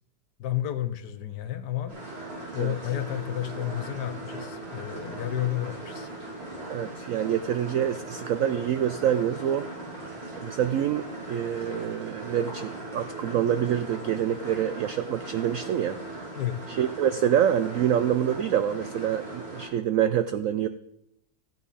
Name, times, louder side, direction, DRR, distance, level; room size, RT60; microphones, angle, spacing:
voice 1, 0.4-2.0 2.5-6.1 16.3-16.6, left 12 dB, 70° left, 12 dB, 1.3 m, -31 dB
sound 1, 1.9-19.7, right 2 dB, 35° right, 4.3 m, -39 dB
voice 2, 6.7-9.7 10.4-16.0 16.7-20.7, right 10 dB, 75° right, 11 dB, 0.7 m, -26 dB
13.5 x 9.1 x 4.1 m, 0.80 s
omnidirectional pair, 1.9 m